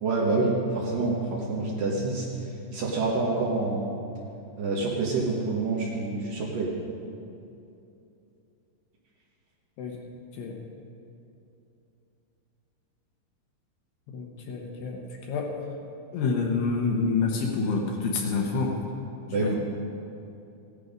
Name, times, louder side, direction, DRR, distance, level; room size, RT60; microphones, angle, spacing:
voice 1, 0.0-2.3 2.7-3.9 4.6-6.7 19.3-19.6, right 3 dB, 60° right, -5 dB, 2.6 m, -27 dB
voice 2, 14.1-15.5 16.1-18.8 19.3-19.6, left 4 dB, 70° left, 0 dB, 2.8 m, -28 dB
16.5 x 11.0 x 5.2 m, 2.8 s
omnidirectional pair, 5.4 m